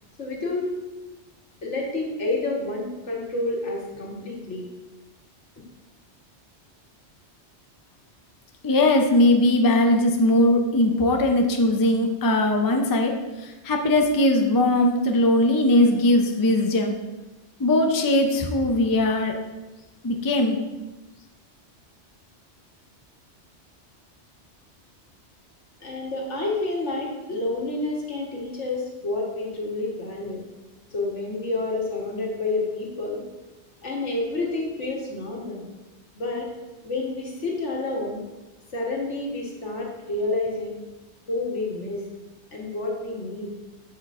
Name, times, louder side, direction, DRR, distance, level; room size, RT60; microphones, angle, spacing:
voice 1, 0.2-0.7 1.6-4.6 25.8-30.4 30.9-33.2 33.8-35.6 36.2-36.5 36.8-38.2 38.7-40.8 41.3-42.0 42.5-43.5, left 2 dB, 80° left, -2 dB, 1.7 m, -29 dB
voice 2, 8.6-13.1 13.4-17.0 17.6-19.3 20.0-20.6, left 1 dB, 25° left, 3 dB, 0.5 m, -20 dB
7.5 x 7.1 x 2.5 m, 1.1 s
omnidirectional pair, 1.2 m